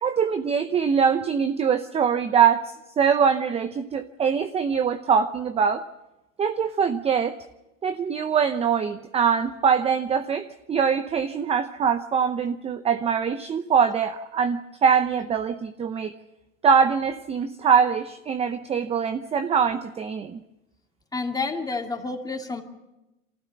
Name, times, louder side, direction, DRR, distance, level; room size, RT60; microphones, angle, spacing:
voice 1, 0.0-5.8 6.4-7.4 7.8-16.1 16.6-20.4, right 7 dB, 15° right, 10 dB, 0.7 m, -23 dB
voice 2, 21.1-22.6, left 3 dB, 10° left, 3 dB, 2.5 m, -29 dB
24.0 x 15.5 x 9.2 m, 0.98 s
hypercardioid pair, 120°, 38 cm